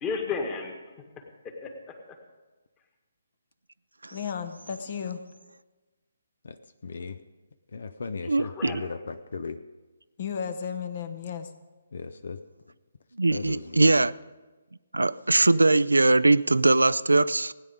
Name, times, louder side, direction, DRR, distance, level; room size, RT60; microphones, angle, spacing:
voice 1, 0.0-2.2 8.4-8.9, left 5 dB, 20° left, 3 dB, 1.8 m, -35 dB
voice 2, 4.1-5.2 10.2-11.5, left 7 dB, 45° left, 10 dB, 1.0 m, -34 dB
voice 3, 6.4-7.2 7.7-9.6 11.9-12.4 13.3-14.1 15.4-15.5, left 4 dB, 60° left, 12 dB, 0.6 m, -37 dB
voice 4, 8.3-8.7 13.2-14.1 14.9-17.5, right 2 dB, 80° right, 18 dB, 0.3 m, -21 dB
16.5 x 9.5 x 5.1 m, 1.2 s
figure-of-eight pair, 140°, 0 cm